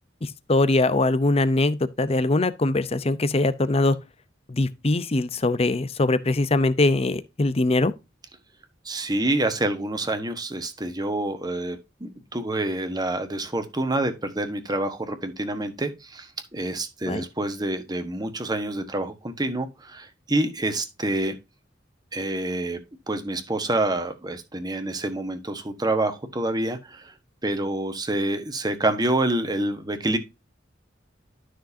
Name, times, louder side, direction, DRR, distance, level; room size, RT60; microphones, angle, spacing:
voice 1, 0.2-4.0 4.5-7.9 17.1-17.2, left 2 dB, 35° left, 0.7 m, -22 dB
voice 2, 8.8-21.4 22.1-22.8 23.1-27.1 27.4-30.2, right 2 dB, 20° right, 1.3 m, -27 dB
12.5 x 6.4 x 2.7 m
head